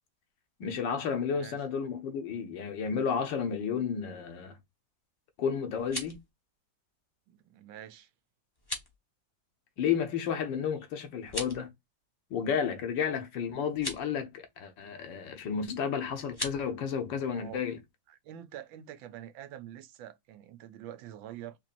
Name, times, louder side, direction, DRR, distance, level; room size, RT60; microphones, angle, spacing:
voice 1, 0.6-4.6 5.4-6.2 9.8-11.7 12.3-17.8, left 7 dB, 75° left, 1.5 m, -32 dB
sound 1, 5.7-6.3 8.5-8.9 11.2-11.7 13.7-14.0 16.3-16.6, left 1 dB, 25° left, 0.5 m, -38 dB
voice 2, 7.3-8.1 17.3-17.6 18.1-21.6, right 11 dB, 85° right, 1.4 m, -46 dB
4.2 x 3.0 x 2.5 m
omnidirectional pair, 2.1 m